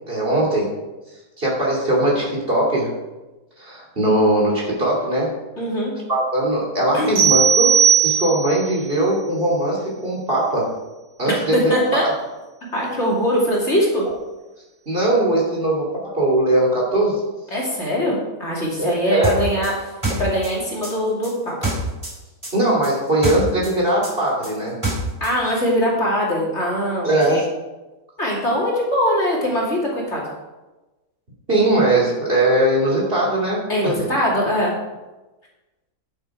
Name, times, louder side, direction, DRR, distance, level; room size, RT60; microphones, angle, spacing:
voice 1, 0.1-0.7 1.4-2.9 3.6-5.3 6.1-10.7 11.2-12.1 14.9-17.2 18.8-19.3 22.5-24.8 27.0-27.5 31.5-33.9, right 1 dB, 35° right, -4 dB, 2.9 m, -20 dB
voice 2, 5.6-5.9 6.9-7.2 11.3-12.0 12.7-14.0 17.5-19.7 20.2-21.7 25.2-27.4 28.2-30.2 33.7-34.7, equal, 45° left, -4 dB, 2.9 m, -22 dB
sound 1, 7.2-8.7, right 7 dB, 80° right, 4.1 m, -16 dB
sound 2, 19.2-22.2 22.4-25.3, right 1 dB, 15° right, 3.6 m, -26 dB
11.0 x 8.1 x 4.8 m, 1.1 s
omnidirectional pair, 1.7 m